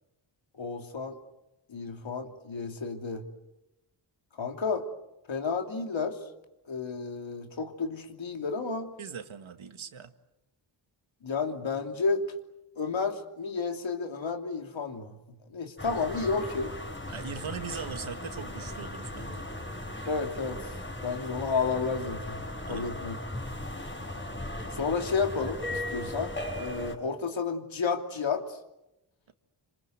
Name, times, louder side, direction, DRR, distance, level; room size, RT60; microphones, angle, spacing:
voice 1, 0.6-1.2 1.7-3.2 4.4-4.8 5.3-6.2 6.7-8.9 11.2-12.3 12.8-15.2 15.5-16.7 20.0-23.2 24.7-28.6, left 4 dB, 70° left, 4 dB, 3.1 m, -31 dB
voice 2, 9.0-10.1 17.1-19.5 22.6-22.9, right 7 dB, 80° right, 8 dB, 2.0 m, -40 dB
sound 1, 15.8-27.0, left 1 dB, 25° left, 5.7 m, -37 dB
27.0 x 26.5 x 8.0 m, 0.94 s
wide cardioid pair, 75°, 47 cm